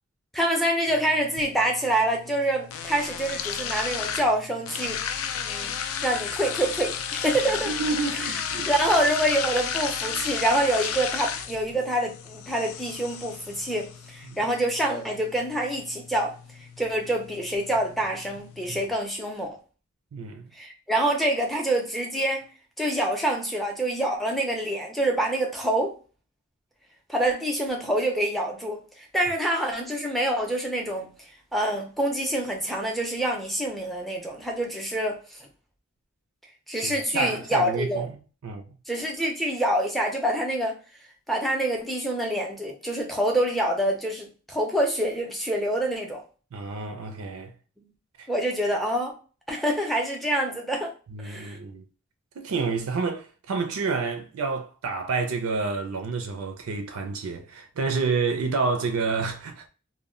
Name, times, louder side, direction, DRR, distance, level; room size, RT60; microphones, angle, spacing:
voice 1, 0.3-5.0 5.4-5.7 6.0-7.7 8.7-16.3 16.8-19.6 20.5-22.4 22.8-25.9 27.1-35.5 36.7-38.0 38.9-40.8 41.3-46.2 48.3-49.2 49.5-50.9 51.2-51.6, right 1 dB, ahead, 0.4 m, -26 dB
sound 1, 0.9-18.9, left 7 dB, 75° left, 0.3 m, -34 dB
voice 2, 7.7-8.7 14.2-14.4 18.7-18.8 20.1-20.5 36.8-38.8 46.5-47.5 48.2-48.3 51.1-51.8 52.4-59.7, right 4 dB, 75° right, 0.4 m, -29 dB
2.1 x 2.0 x 3.6 m
head